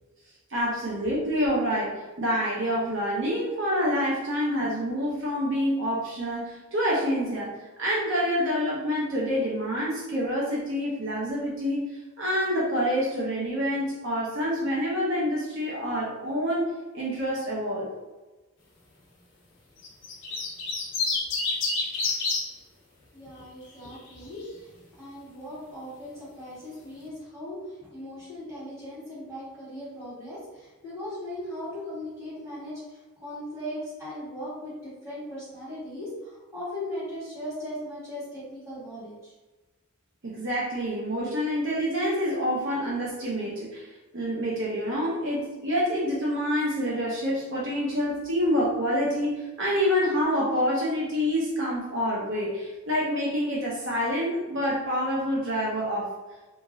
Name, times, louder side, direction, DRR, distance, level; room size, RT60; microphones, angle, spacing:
voice 1, 0.5-7.5 7.8-11.8 12.2-16.6 16.9-17.9 40.2-43.9 44.1-56.1, equal, 60° right, -5 dB, 0.6 m, -27 dB
sound 1, 19.8-22.4 23.7-24.1, left 3 dB, 55° left, 0.7 m, -28 dB
voice 2, 23.1-24.7 25.0-39.3, left 1 dB, 15° right, -10 dB, 1.5 m, -38 dB
3.0 x 2.5 x 2.5 m, 1.2 s
head